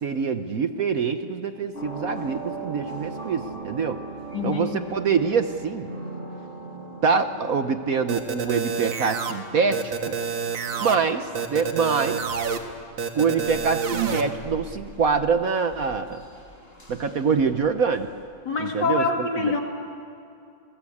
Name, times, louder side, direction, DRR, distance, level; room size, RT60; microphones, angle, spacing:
voice 1, 0.0-4.0 4.4-5.9 7.0-10.2 10.8-12.2 13.1-16.2 16.9-18.1 18.6-19.5, right 5 dB, 55° right, 8 dB, 1.2 m, -25 dB
sound 1, 1.7-13.1 13.4-18.2, right 3 dB, 30° left, 4.2 m, -40 dB
voice 2, 4.3-4.9 18.4-19.6, left 4 dB, 60° left, 3 dB, 3.0 m, -26 dB
sound 2, 8.1-9.3 9.7-11.0 11.3-12.6 13.0-14.2, right 6 dB, 80° right, 2.3 m, -28 dB
28.5 x 21.5 x 8.6 m, 2.5 s
omnidirectional pair, 2.1 m